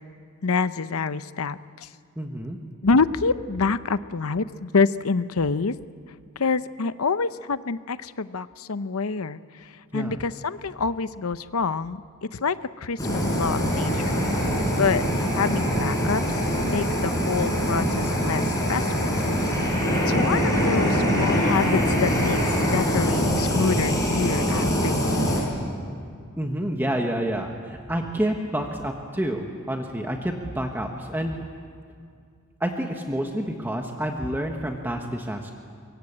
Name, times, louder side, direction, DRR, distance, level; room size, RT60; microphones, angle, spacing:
voice 1, 0.4-1.9 2.8-5.7 6.4-12.0 12.3-14.1 14.8-16.2 16.6-19.1 19.4-19.5 20.0-25.5, left 4 dB, 75° left, 14 dB, 0.7 m, -26 dB
voice 2, 2.2-2.6 9.9-10.2 14.8-15.2 26.4-31.4 32.6-35.5, right 1 dB, 10° right, 2 dB, 1.3 m, -29 dB
Fire, 13.0-25.4, equal, 15° left, 5.7 m, -23 dB
24.5 x 22.0 x 8.8 m, 2.2 s
head